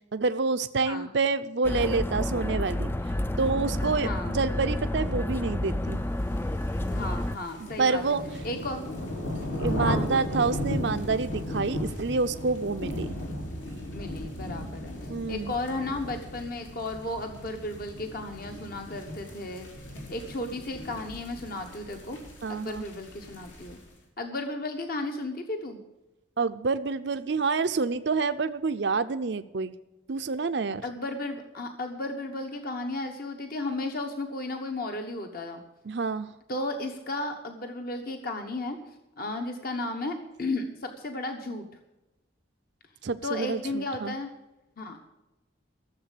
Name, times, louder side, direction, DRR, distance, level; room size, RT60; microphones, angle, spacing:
voice 1, 0.1-2.9 3.4-6.0 7.6-8.2 9.6-13.2 15.1-15.5 22.4-22.8 26.4-29.7 30.1-30.8 35.9-36.3 43.0-44.1, right 4 dB, 60° right, 10 dB, 0.6 m, -28 dB
sound 1, 1.6-7.4, left 1 dB, 10° left, 0.4 m, -30 dB
voice 2, 4.0-4.4 6.9-8.0 8.4-8.8 9.8-10.5 13.9-14.9 15.3-19.7 20.1-22.2 22.5-23.8 24.2-25.8 30.8-35.6 36.5-38.8 39.2-41.6 43.2-44.3 44.8-45.1, left 2 dB, 50° left, 4 dB, 1.2 m, -34 dB
sound 2, 6.4-23.9, left 1 dB, 80° left, 3.5 m, -36 dB
14.0 x 7.4 x 8.4 m, 1.0 s
head